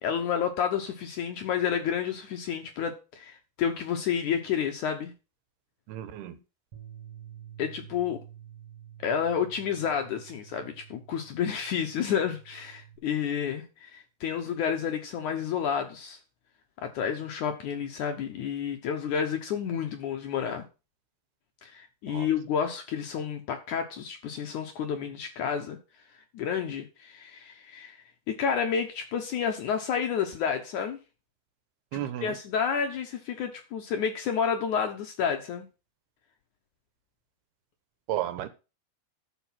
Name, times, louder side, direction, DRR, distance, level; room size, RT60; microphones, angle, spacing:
voice 1, 0.0-5.1 7.6-8.2 9.0-16.2 16.8-20.7 21.6-25.8 26.3-28.0 28.3-31.0 31.9-35.7, left 7 dB, 70° left, 1.9 m, -30 dB
voice 2, 5.9-6.4 22.1-22.3 31.9-32.4 38.1-38.5, right 12 dB, 75° right, 2.8 m, -33 dB
Bass guitar, 6.7-13.0, right 10 dB, 45° right, 2.3 m, -49 dB
13.0 x 5.2 x 5.9 m
omnidirectional pair, 4.7 m